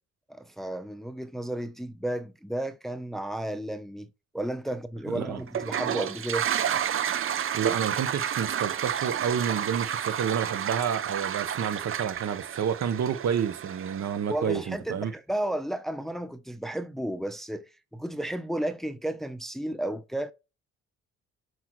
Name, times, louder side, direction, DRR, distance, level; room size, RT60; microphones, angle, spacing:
voice 1, 0.3-4.1 4.3-6.5 14.3-20.3, right 1 dB, ahead, 0.8 m, -33 dB
voice 2, 5.1-5.4 7.5-15.1, right 8 dB, 60° right, 1.2 m, -29 dB
Toilet flush, 5.5-14.4, right 9 dB, 45° right, 0.6 m, -31 dB
8.2 x 4.8 x 3.2 m
cardioid pair, 90°, 30 cm